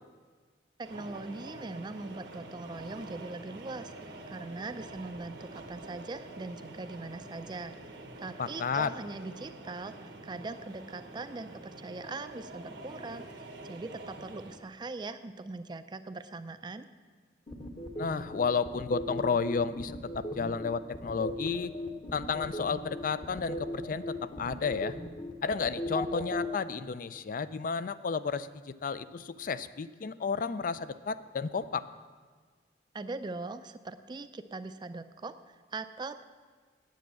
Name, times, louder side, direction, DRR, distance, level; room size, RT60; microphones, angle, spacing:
voice 1, 0.8-16.9 32.9-36.2, right 3 dB, 25° right, 11 dB, 0.4 m, -41 dB
sound 1, 0.8-14.6, right 2 dB, 85° right, 1.2 m, -47 dB
voice 2, 8.4-8.9 18.0-21.7 22.1-25.0 25.4-31.9, left 5 dB, 50° left, 14 dB, 0.4 m, -32 dB
sound 2, 17.5-26.5, left 1 dB, 30° left, 1.0 m, -37 dB
9.3 x 8.3 x 7.5 m, 1.5 s
head